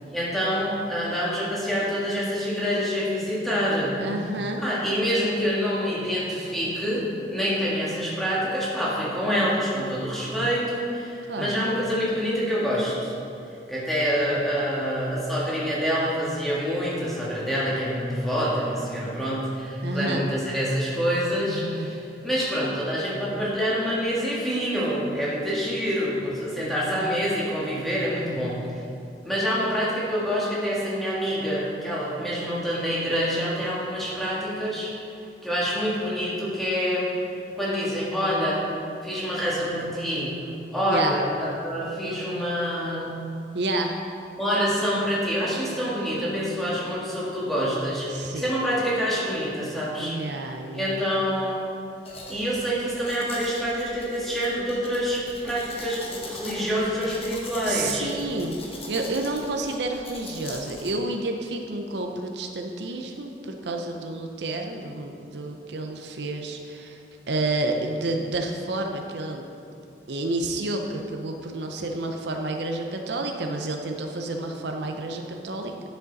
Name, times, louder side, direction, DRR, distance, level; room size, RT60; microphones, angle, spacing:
voice 1, 0.1-4.0 4.6-13.2 13.7-28.6 29.2-34.9 35.4-37.2 37.6-38.6 39.0-40.4 40.7-43.1 44.4-50.1 50.7-51.6 52.3-58.1, equal, ahead, -8 dB, 1.8 m, -26 dB
voice 2, 4.0-4.6 11.3-11.6 19.8-20.2 21.5-21.9 40.9-41.2 43.5-43.9 48.1-48.6 50.0-51.0 57.7-67.0 67.3-69.4 70.1-75.7, right 2 dB, 75° right, 3 dB, 0.7 m, -30 dB
Domestic sounds home sounds, 52.0-60.9, left 2 dB, 35° left, 1.1 m, -42 dB
10.0 x 6.7 x 4.0 m, 2.5 s
head